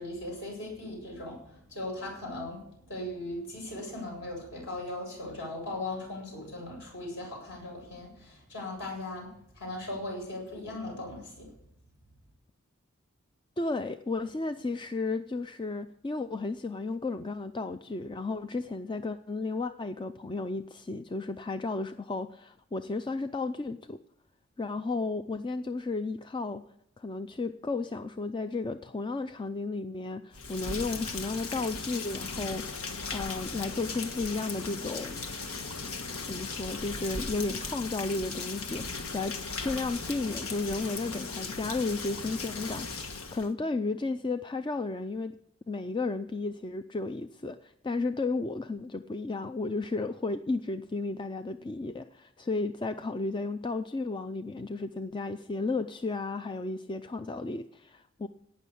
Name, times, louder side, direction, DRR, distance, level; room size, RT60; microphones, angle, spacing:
voice 1, 0.0-11.5, left 1 dB, 60° left, -2 dB, 7.7 m, -38 dB
voice 2, 13.6-24.0 24.6-26.6 27.0-32.8 33.1-35.2 36.3-45.4 45.7-58.3, left 3 dB, 20° left, 9 dB, 0.4 m, -33 dB
Rain, 30.3-43.5, left 4 dB, 85° left, 1.4 m, -37 dB
18.0 x 6.3 x 8.3 m, 0.74 s
head